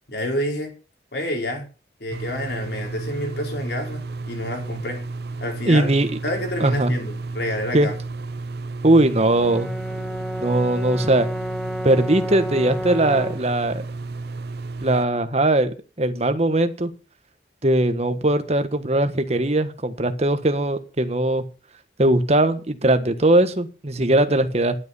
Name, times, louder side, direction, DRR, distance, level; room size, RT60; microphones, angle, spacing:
voice 1, 0.1-0.7 1.1-1.7 2.0-5.0 5.4-5.9 6.2-7.9, left 1 dB, 65° left, 4.8 m, -28 dB
sound 1, 2.1-15.0, right 3 dB, 60° right, 0.7 m, -32 dB
voice 2, 5.7-6.1 6.6-6.9 7.7-7.9 8.8-9.7 10.4-11.3 11.8-13.8 14.8-16.9 17.6-21.4 22.0-24.8, right 1 dB, 35° right, 1.4 m, -20 dB
Brass instrument, 9.2-13.5, equal, ahead, 0.6 m, -31 dB
12.0 x 8.4 x 6.9 m
head